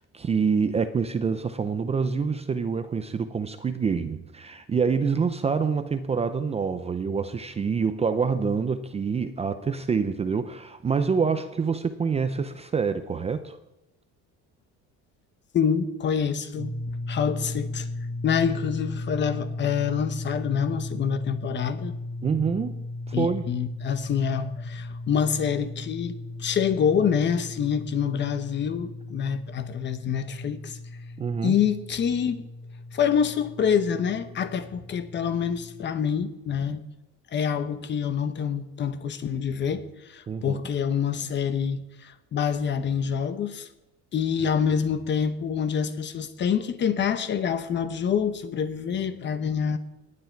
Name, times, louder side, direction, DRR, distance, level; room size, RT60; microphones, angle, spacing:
voice 1, 0.1-13.6 22.2-22.7 23.1-23.5 31.2-31.5 40.3-40.6, right 5 dB, 20° right, 0.5 m, -26 dB
voice 2, 15.5-16.7 17.1-17.9 18.2-21.9 23.1-30.8 31.4-32.4 32.9-36.8 37.3-43.7 44.1-49.8, left 7 dB, 35° left, 1.0 m, -26 dB
sound 1, 16.5-35.8, left 2 dB, 90° right, 2.3 m, -36 dB
18.0 x 9.8 x 4.6 m
cardioid pair, 160°, 31 cm